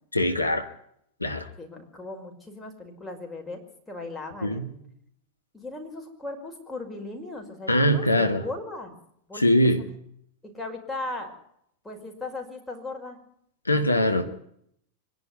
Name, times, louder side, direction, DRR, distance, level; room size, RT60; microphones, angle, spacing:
voice 1, 0.1-0.7 1.2-1.5 4.4-4.7 7.7-8.4 9.3-9.8 13.6-14.2, left 1 dB, 85° left, 7 dB, 1.5 m, -22 dB
voice 2, 1.6-3.6 3.9-4.8 5.5-8.9 9.3-9.6 10.4-11.3 11.8-13.2, left 2 dB, 10° left, 1 dB, 5.5 m, -37 dB
25.0 x 11.0 x 9.6 m, 0.71 s
figure-of-eight pair, 90°, 0 cm